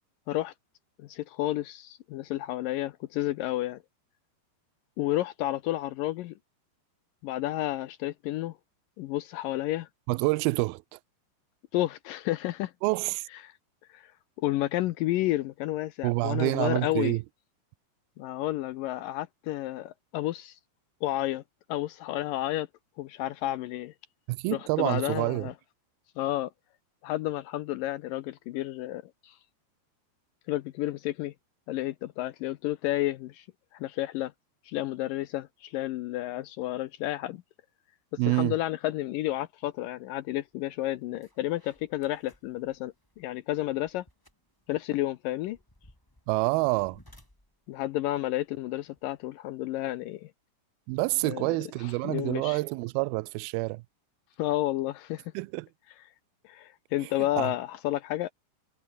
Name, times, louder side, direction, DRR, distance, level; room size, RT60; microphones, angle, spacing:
voice 1, 1.0-3.8 5.0-6.3 7.2-8.6 9.0-9.9 11.7-12.7 13.9-14.1 14.4-17.2 18.2-20.6 21.0-21.4 21.7-22.7 23.0-23.9 24.5-25.5 26.2-26.5 27.0-29.4 30.5-31.3 31.7-33.5 33.7-34.3 34.7-37.4 38.3-44.0 44.7-45.6 47.7-50.3 51.2-51.6 52.0-52.6 54.4-55.2 56.5-58.3, left 15 dB, 85° left, 2.0 m, -31 dB
voice 2, 10.1-11.0 12.8-13.3 16.0-17.2 24.3-25.5 38.2-38.6 46.3-47.0 50.9-53.8 55.3-55.7 57.0-57.1 57.4-57.5, right 24 dB, 85° right, 2.2 m, -27 dB
sound 1, 40.5-40.6 41.0-49.3, left 1 dB, 5° left, 3.8 m, -61 dB
omnidirectional pair, 4.9 m